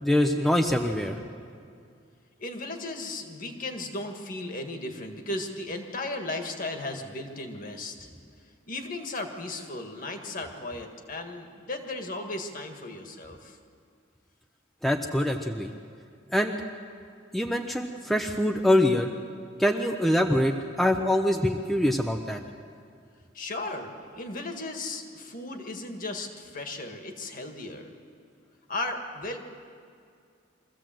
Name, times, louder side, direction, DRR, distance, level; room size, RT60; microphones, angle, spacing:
voice 1, 0.0-1.2 14.8-15.7 16.3-16.6 17.3-19.1 19.6-22.4, left 1 dB, ahead, 3 dB, 0.7 m, -24 dB
voice 2, 2.4-8.1 8.7-13.6 23.3-27.9 28.7-29.4, left 2 dB, 45° left, 4 dB, 1.8 m, -36 dB
23.0 x 15.0 x 7.7 m, 2.3 s
head